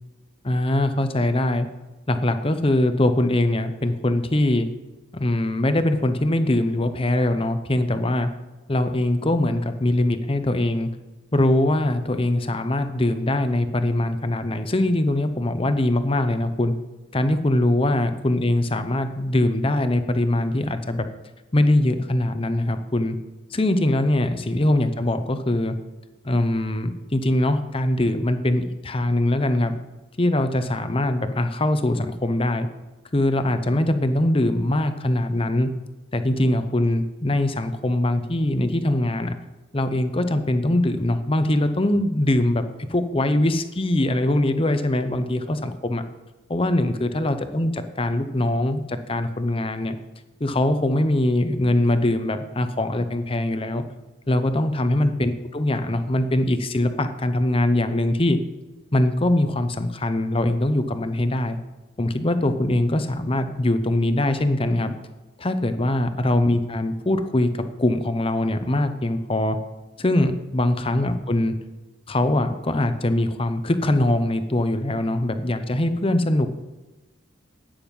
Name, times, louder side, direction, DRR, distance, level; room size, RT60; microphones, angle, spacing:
voice 1, 0.4-1.7 2.1-4.7 5.1-8.3 8.7-10.9 11.3-16.7 17.1-21.0 21.5-23.2 23.5-25.7 26.2-29.8 30.2-32.7 33.1-35.7 36.1-39.4 39.7-42.6 42.9-46.0 46.5-50.0 50.4-53.8 54.3-58.4 58.9-61.6 62.0-64.9 65.4-67.5 67.8-69.6 70.0-71.5 72.1-76.5, left 1 dB, 25° left, 9 dB, 0.8 m, -22 dB
12.0 x 9.1 x 5.4 m, 1.1 s
head